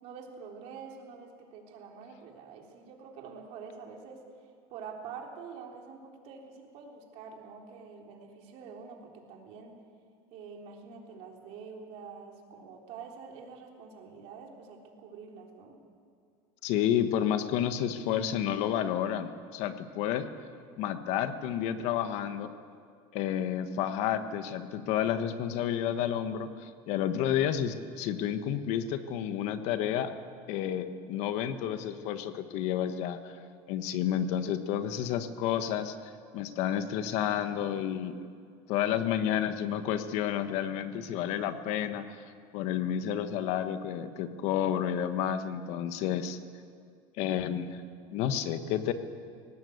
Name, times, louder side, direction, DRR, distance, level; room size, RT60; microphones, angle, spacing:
voice 1, 0.0-9.8 10.3-15.8, right 5 dB, 60° right, 1 dB, 3.8 m, -46 dB
voice 2, 16.6-20.3 20.8-22.5 23.1-30.1 30.5-33.4 33.7-38.2 38.7-42.1 42.5-46.4 47.2-47.8 48.1-48.9, left 10 dB, 65° left, 10 dB, 1.4 m, -30 dB
19.5 x 18.0 x 8.1 m, 2.2 s
cardioid pair, 135°, 12 cm